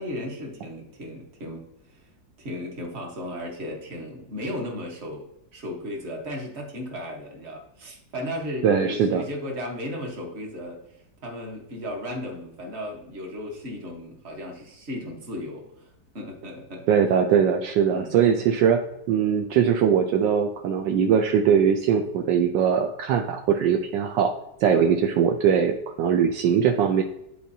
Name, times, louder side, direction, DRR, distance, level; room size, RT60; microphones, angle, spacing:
voice 1, 0.0-2.0 2.4-10.8 11.2-15.9 16.1-17.2 17.9-18.2, left 1 dB, 40° right, 1 dB, 1.5 m, -35 dB
voice 2, 8.6-9.2 16.9-18.8 19.1-24.3 24.6-27.0, right 7 dB, 75° right, 4 dB, 1.2 m, -21 dB
10.0 x 4.3 x 2.7 m, 0.85 s
omnidirectional pair, 2.0 m